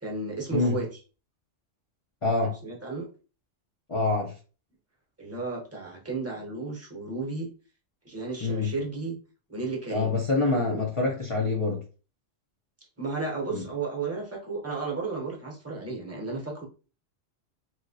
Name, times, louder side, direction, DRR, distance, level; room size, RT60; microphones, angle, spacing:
voice 1, 0.0-0.9 2.6-3.1 5.2-7.5 8.0-9.2 9.5-10.1 10.4-10.8 13.0-16.6, right 3 dB, 15° right, 0 dB, 0.8 m, -33 dB
voice 2, 2.2-2.6 3.9-4.3 8.4-8.7 9.9-11.8 13.5-13.6, left 3 dB, 35° left, -2 dB, 0.6 m, -26 dB
3.1 x 2.9 x 2.7 m, 0.35 s
omnidirectional pair, 1.3 m